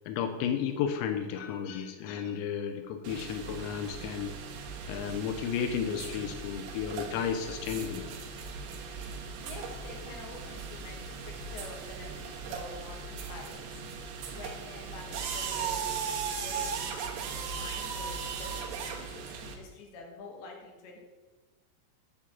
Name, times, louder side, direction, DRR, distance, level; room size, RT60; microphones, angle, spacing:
voice 1, 0.1-4.3 4.9-8.0, left 8 dB, 85° left, 5 dB, 2.5 m, -33 dB
sound 1, 3.0-19.5, right 5 dB, 75° right, 2.6 m, -38 dB
voice 2, 9.4-13.8 14.3-21.0, left 3 dB, 65° left, 0 dB, 3.0 m, -47 dB
11.0 x 3.7 x 7.2 m, 1.3 s
omnidirectional pair, 5.9 m